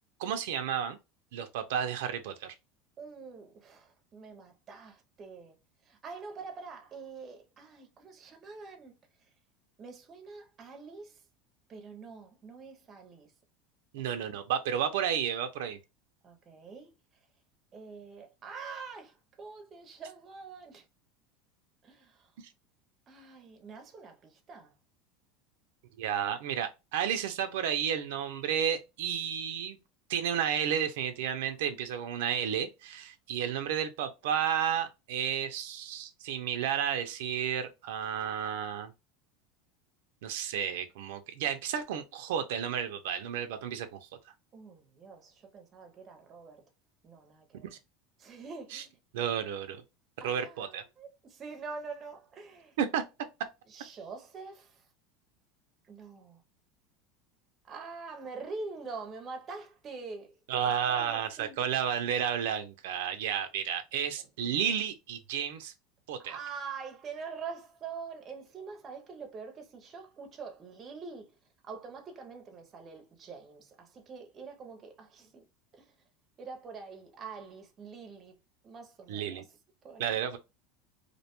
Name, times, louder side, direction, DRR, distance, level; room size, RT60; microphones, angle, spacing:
voice 1, 0.2-1.0 1.3-2.5 13.9-15.8 26.0-29.8 30.1-38.9 40.2-44.1 48.7-48.8 49.1-49.8 50.2-50.8 52.8-53.0 60.5-65.7 66.1-66.4 79.1-79.4 80.0-80.4, right 8 dB, 80° right, 0.4 m, -32 dB
voice 2, 3.0-5.6 5.9-9.0 9.8-11.2 11.7-13.3 14.0-14.1 16.2-16.9 17.7-20.8 21.8-22.3 23.1-24.7 44.5-46.7 47.0-47.8 48.2-49.0 50.2-52.8 53.7-54.8 55.9-56.4 57.6-60.4 60.9-61.6 66.2-71.3 71.6-75.4 75.7-75.9 76.4-78.3 78.6-79.4 79.8-80.2, right 4 dB, 25° right, 0.5 m, -45 dB
2.5 x 2.1 x 2.8 m
supercardioid pair, 155°, 0 cm